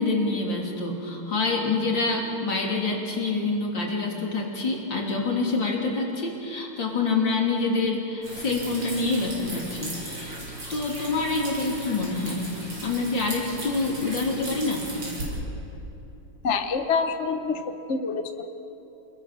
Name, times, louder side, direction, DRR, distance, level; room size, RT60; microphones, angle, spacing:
voice 1, 0.0-10.4 10.7-12.5 12.8-14.9, left 3 dB, 60° left, -1 dB, 4.0 m, -26 dB
sound 1, 8.2-15.2, right 1 dB, 75° right, 8.2 m, -37 dB
voice 2, 16.4-18.5, left 5 dB, 45° left, 7 dB, 1.0 m, -27 dB
29.5 x 21.0 x 6.8 m, 3.0 s
omnidirectional pair, 2.3 m